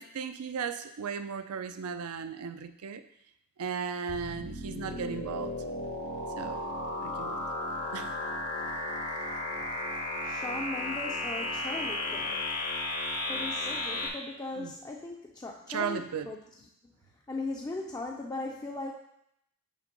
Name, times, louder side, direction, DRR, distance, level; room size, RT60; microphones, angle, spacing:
voice 1, 0.0-3.0 3.6-5.6 6.4-6.7 7.0-7.4 7.9-8.1 14.6-14.7 15.7-16.3, right 6 dB, 75° right, 10 dB, 0.5 m, -36 dB
sound 1, 4.1-14.1, left 2 dB, 75° left, 1.2 m, -34 dB
voice 2, 10.2-12.6 13.3-16.4 17.3-18.9, left 2 dB, 15° left, -1 dB, 0.4 m, -38 dB
6.5 x 3.5 x 5.2 m, 0.78 s
head